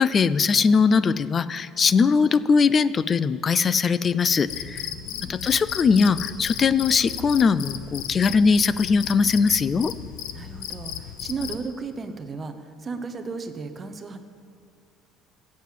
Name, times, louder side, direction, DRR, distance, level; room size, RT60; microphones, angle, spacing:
voice 1, 0.0-4.9 5.3-9.9, left 5 dB, 25° left, 16 dB, 0.3 m, -20 dB
Cricket, 4.5-11.7, left 11 dB, 80° left, 0.7 m, -35 dB
voice 2, 4.7-5.3 10.3-14.2, right 4 dB, 20° right, 8 dB, 0.8 m, -35 dB
16.0 x 7.4 x 7.5 m, 2.3 s
cardioid pair, 165°, 0 cm